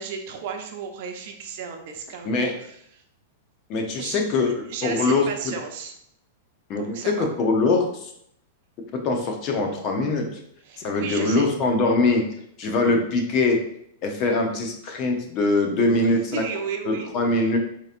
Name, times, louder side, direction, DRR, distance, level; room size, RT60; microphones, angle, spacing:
voice 1, 0.0-3.0 4.0-4.2 4.7-5.9 6.8-7.3 10.6-11.5 15.9-17.1, right 6 dB, 60° right, 3 dB, 0.7 m, -34 dB
voice 2, 3.7-5.2 6.7-8.1 8.9-10.3 10.8-12.3 12.6-13.6 14.0-16.4 16.9-17.6, left 3 dB, 40° left, 3 dB, 0.7 m, -22 dB
4.5 x 2.9 x 2.5 m, 0.71 s
hypercardioid pair, 130°, 0 cm